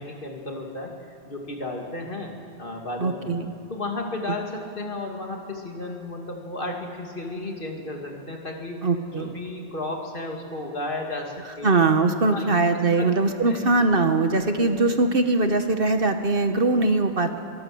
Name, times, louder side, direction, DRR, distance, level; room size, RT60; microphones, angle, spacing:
voice 1, 0.0-3.3 3.7-11.7 12.3-12.6 13.0-13.1 13.5-13.6, left 2 dB, 45° left, 1 dB, 2.6 m, -33 dB
voice 2, 3.0-3.5 8.8-9.4 11.6-17.4, right 3 dB, 50° right, 7 dB, 1.3 m, -21 dB
23.0 x 19.0 x 7.8 m, 2.7 s
omnidirectional pair, 1.2 m